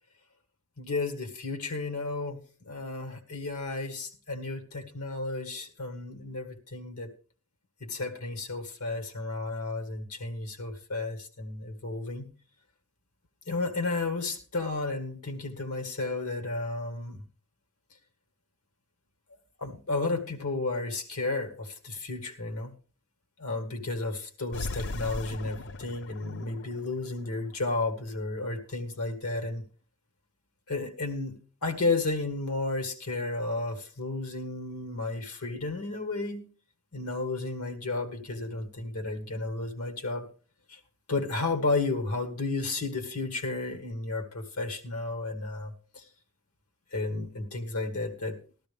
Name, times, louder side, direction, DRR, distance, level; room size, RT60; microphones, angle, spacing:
voice 1, 0.8-2.4 2.7-7.1 7.8-12.3 13.5-17.2 19.6-22.7 23.4-29.6 30.7-31.3 31.6-36.5 36.9-40.3 40.7-40.8 41.1-46.0 46.9-48.4, left 3 dB, 80° left, 5 dB, 1.7 m, -32 dB
sound 1, 24.5-27.9, left 2 dB, 55° left, 0.5 m, -39 dB
13.5 x 13.0 x 3.4 m, 0.38 s
head